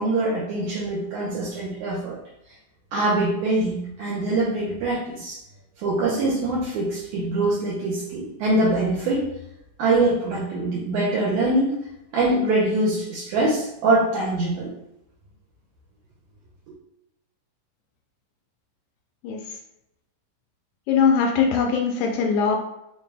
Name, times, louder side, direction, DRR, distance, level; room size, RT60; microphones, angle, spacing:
voice 1, 0.0-2.2 2.9-5.4 5.8-9.3 9.8-11.8 12.1-14.7, right 2 dB, 75° right, -5 dB, 2.0 m, -23 dB
voice 2, 20.9-22.6, left 6 dB, 80° left, 2 dB, 1.9 m, -21 dB
5.0 x 2.2 x 3.3 m, 0.84 s
omnidirectional pair, 3.7 m